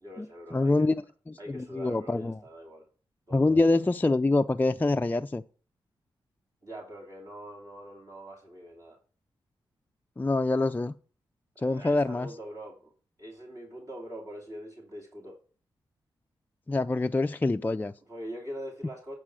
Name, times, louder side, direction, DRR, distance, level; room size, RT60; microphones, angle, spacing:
voice 1, 0.0-0.9 1.4-2.9 3.3-3.8 6.6-9.0 11.6-12.9 13.2-15.4 18.1-19.2, equal, 35° right, 2.8 m, -43 dB
voice 2, 0.5-1.0 1.3-2.4 3.3-5.4 10.2-10.9 11.6-12.3 16.7-17.9, left 2 dB, 20° left, 0.4 m, -25 dB
8.8 x 6.1 x 4.8 m
cardioid pair, 55°, 9 cm